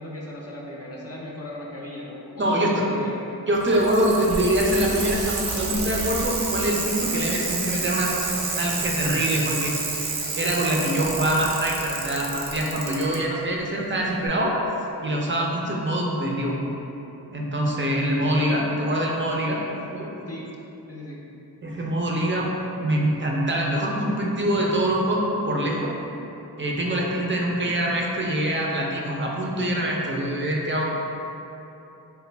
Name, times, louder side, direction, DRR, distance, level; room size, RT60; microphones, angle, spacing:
voice 1, 0.0-3.2 20.3-20.5 20.9-21.2, left 1 dB, 40° left, -4 dB, 0.5 m, -37 dB
voice 2, 2.4-2.7 3.5-8.2 8.6-9.7 10.4-14.5 15.0-16.6 17.3-20.1 21.6-22.5 22.8-25.9 26.6-30.8, right 1 dB, 30° right, -2 dB, 0.5 m, -24 dB
Bicycle, 3.6-13.2 14.3-14.4, right 3 dB, 70° right, 0.6 m, -29 dB
3.2 x 2.2 x 3.3 m, 3.0 s
cardioid pair, 50°, 41 cm